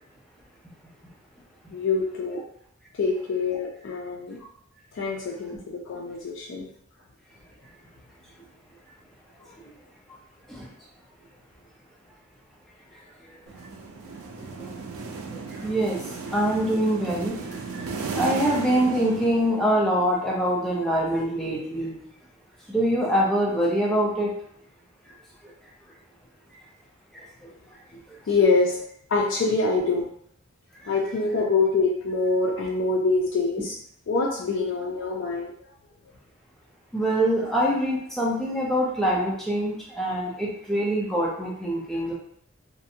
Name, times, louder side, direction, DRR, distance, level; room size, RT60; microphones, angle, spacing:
voice 1, 1.7-2.4 2.9-4.4 4.9-6.7 28.3-28.8 29.1-30.1 30.9-33.8 34.1-35.5, left 3 dB, 60° left, -2 dB, 0.4 m, -25 dB
sound 1, 13.5-20.0, right 4 dB, 80° right, 0.4 m, -35 dB
voice 2, 14.4-14.8 15.3-22.0 22.7-24.3 25.4-25.5 27.1-27.5 28.1-28.2 30.8-30.9 36.9-42.1, right 1 dB, ahead, -5 dB, 0.5 m, -25 dB
2.6 x 2.1 x 2.6 m, 0.67 s
head